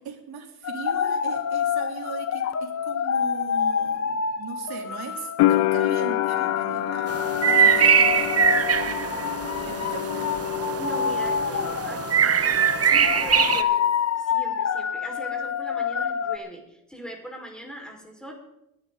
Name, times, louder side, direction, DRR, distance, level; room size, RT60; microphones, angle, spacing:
voice 1, 0.0-9.2 9.7-10.4, right 6 dB, 75° right, 0 dB, 3.3 m, -39 dB
sound 1, 0.6-16.4, left 7 dB, 40° left, 1.0 m, -28 dB
sound 2, 5.4-12.2 12.4-13.3, left 17 dB, 90° left, 0.5 m, -28 dB
sound 3, 7.1-13.6, right 7 dB, 40° right, 1.0 m, -22 dB
voice 2, 10.8-13.8 14.2-18.3, right 1 dB, ahead, 1 dB, 4.8 m, -40 dB
23.0 x 11.0 x 3.9 m, 0.84 s
cardioid pair, 100°, 38 cm